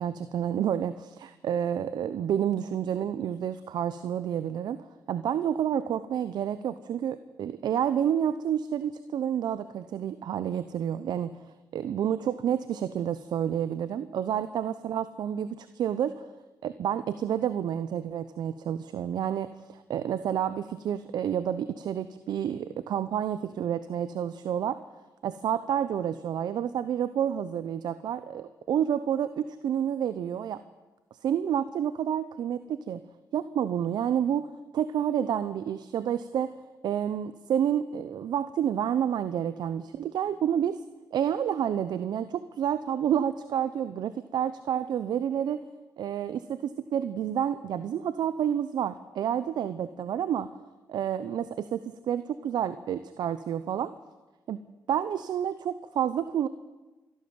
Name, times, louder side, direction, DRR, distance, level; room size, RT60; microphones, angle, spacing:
voice 1, 0.0-4.8 5.1-11.3 11.7-16.2 16.6-24.8 25.2-30.6 31.2-33.0 33.3-34.5 34.7-36.5 36.8-40.8 41.1-45.6 46.0-50.5 50.9-53.9 54.5-54.6 54.9-56.5, right 9 dB, 75° right, 13 dB, 0.8 m, -29 dB
27.0 x 12.0 x 9.6 m, 1.2 s
cardioid pair, 65°, 7 cm